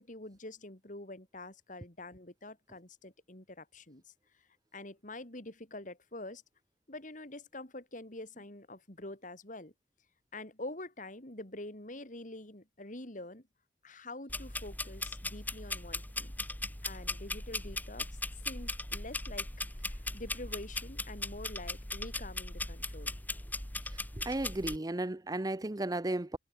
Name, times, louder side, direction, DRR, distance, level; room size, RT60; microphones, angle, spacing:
voice 1, 0.0-4.0 4.7-6.4 6.9-9.7 10.3-13.4 13.8-16.3 16.8-18.1 18.5-19.5 19.7-23.1, left 2 dB, 45° left, 3.5 m, -46 dB
sound 1, 14.3-24.8, left 2 dB, 10° left, 1.3 m, -39 dB
voice 2, 24.2-26.4, right 2 dB, 20° right, 0.7 m, -34 dB
head